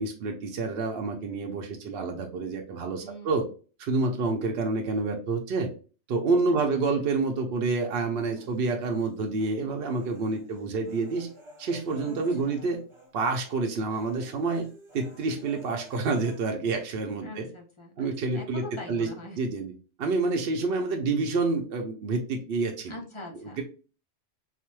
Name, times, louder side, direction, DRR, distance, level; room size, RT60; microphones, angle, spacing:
voice 1, 0.0-3.5 3.8-5.7 6.1-11.3 11.6-12.8 13.1-14.7 14.9-17.5 18.0-19.1 19.4-19.7 20.0-23.0 23.6-23.7, right 3 dB, 65° right, 2 dB, 0.7 m, -28 dB
voice 2, 3.0-3.4 6.5-6.6 6.9-7.0 12.0-12.7 17.2-19.4 20.5-20.6 22.9-23.6, left 2 dB, 35° left, 1 dB, 0.5 m, -43 dB
Human voice, 8.4-9.6 9.9-13.1 13.4-13.6 13.9-16.4, right 1 dB, 30° right, 0.8 m, -52 dB
3.2 x 2.0 x 3.0 m, 0.36 s
omnidirectional pair, 1.2 m